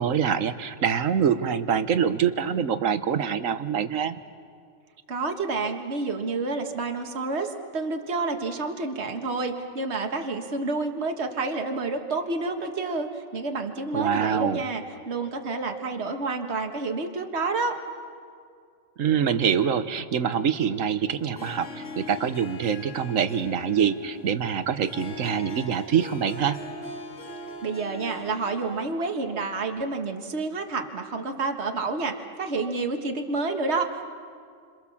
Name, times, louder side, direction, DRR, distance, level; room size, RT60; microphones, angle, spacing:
voice 1, 0.0-4.2 13.9-14.6 19.0-26.6, right 7 dB, 85° right, 12 dB, 1.4 m, -25 dB
voice 2, 5.1-17.8 27.6-34.0, right 3 dB, 55° right, 4 dB, 1.9 m, -29 dB
Harp, 21.2-29.1, left 2 dB, 65° left, 2.2 m, -41 dB
29.5 x 27.0 x 7.2 m, 2.2 s
omnidirectional pair, 1.3 m